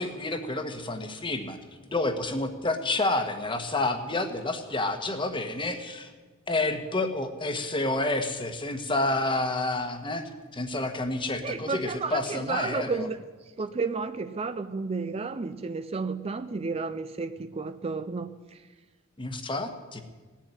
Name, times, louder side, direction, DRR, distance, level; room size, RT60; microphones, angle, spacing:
voice 1, 0.0-1.6 1.9-6.1 6.5-13.0 19.2-20.0, left 2 dB, 25° left, 7 dB, 1.3 m, -29 dB
voice 2, 11.4-13.2 13.6-18.6, right 4 dB, 30° right, 11 dB, 0.4 m, -32 dB
17.5 x 7.4 x 9.6 m, 1.3 s
head